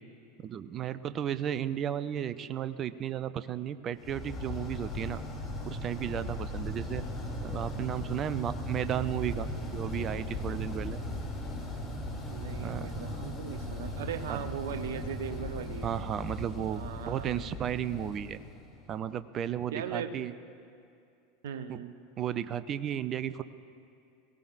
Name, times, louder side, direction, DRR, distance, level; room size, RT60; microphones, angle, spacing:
voice 1, 0.4-5.2 5.7-7.0 7.4-11.0 12.6-12.9 14.3-14.4 15.8-18.4 18.9-20.3 21.7-21.8 22.2-23.4, right 10 dB, 35° right, 14 dB, 0.6 m, -34 dB
sound 1, 4.0-19.0, left 1 dB, 20° left, 2.7 m, -38 dB
voice 2, 12.3-15.9 16.7-17.5 19.7-20.1 21.4-21.9, right 8 dB, 60° right, 9 dB, 0.8 m, -38 dB
22.0 x 17.5 x 2.6 m, 2.4 s
figure-of-eight pair, 80°, 0 cm